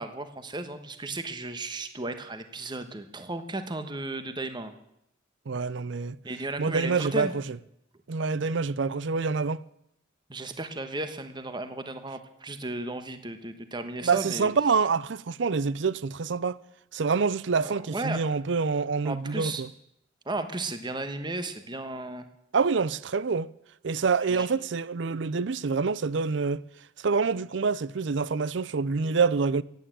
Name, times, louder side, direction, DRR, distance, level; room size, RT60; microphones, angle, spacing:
voice 1, 0.0-4.7 6.2-7.3 10.3-14.5 17.6-18.3 19.0-19.6 20.2-22.3 24.3-24.5, right 2 dB, 25° right, 1.2 m, -35 dB
voice 2, 5.5-6.2 6.6-7.6 8.1-9.6 14.0-16.6 16.9-19.7 22.5-23.5 23.8-26.6 27.0-29.6, right 5 dB, 65° right, 0.5 m, -26 dB
15.5 x 9.3 x 8.9 m
head